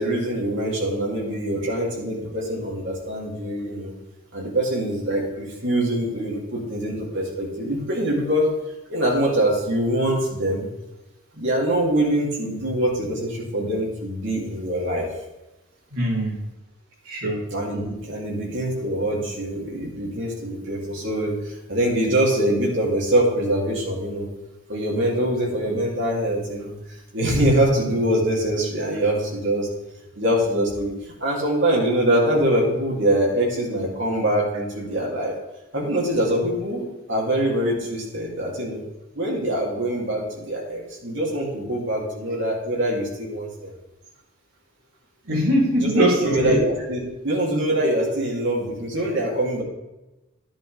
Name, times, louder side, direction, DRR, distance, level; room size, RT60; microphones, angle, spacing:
voice 1, 0.0-3.9 4.3-8.5 8.9-10.7 11.3-15.1 17.5-24.3 24.7-26.7 27.1-29.7 30.1-35.3 35.7-38.8 39.1-43.7 45.8-49.6, right 1 dB, 55° right, -3 dB, 3.2 m, -24 dB
voice 2, 15.9-16.4 17.1-17.5 45.3-46.6, equal, 70° right, -5 dB, 3.7 m, -21 dB
10.5 x 10.5 x 3.6 m, 1.0 s
head